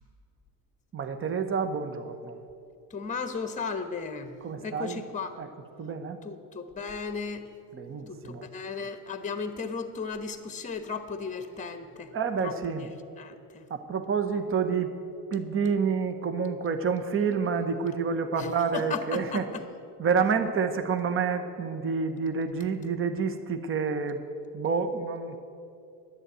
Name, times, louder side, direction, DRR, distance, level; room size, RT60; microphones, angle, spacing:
voice 1, 0.9-2.4 4.4-5.0 5.4-5.5 5.8-6.2 7.7-8.5 12.1-12.9 13.7-14.9 15.3-19.5 20.0-24.2 24.5-25.4, right 5 dB, 25° right, 8 dB, 1.0 m, -28 dB
voice 2, 2.9-5.3 6.2-7.5 8.1-12.1 12.4-12.5 12.8-12.9 13.2-13.6 18.4-19.6, left 5 dB, 15° left, 9 dB, 1.1 m, -35 dB
11.0 x 9.1 x 8.1 m, 2.6 s
supercardioid pair, 85°, 49 cm